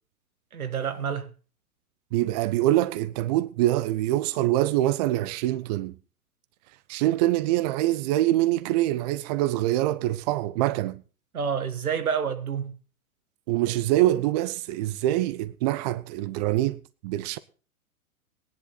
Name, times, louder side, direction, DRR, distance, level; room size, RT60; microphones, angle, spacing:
voice 1, 0.5-1.3 11.3-12.8, right 7 dB, 75° right, 1.7 m, -28 dB
voice 2, 2.1-6.0 6.9-11.0 13.5-17.4, right 15 dB, 30° right, 0.5 m, -24 dB
18.0 x 10.5 x 4.1 m
figure-of-eight pair, 105°, 44 cm